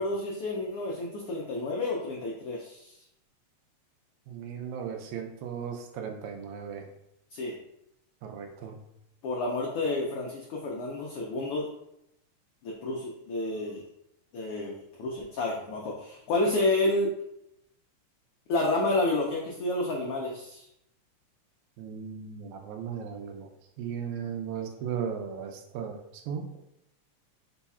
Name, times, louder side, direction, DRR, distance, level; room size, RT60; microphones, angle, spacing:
voice 1, 0.0-2.9 7.3-7.5 9.2-11.7 12.6-13.8 14.3-17.1 18.5-20.7, left 2 dB, 85° left, -2 dB, 1.2 m, -30 dB
voice 2, 4.3-6.9 8.2-8.8 21.8-23.5 23.8-26.0 26.3-26.5, right 7 dB, 85° right, 4 dB, 2.0 m, -36 dB
4.8 x 2.3 x 4.1 m, 0.80 s
omnidirectional pair, 3.3 m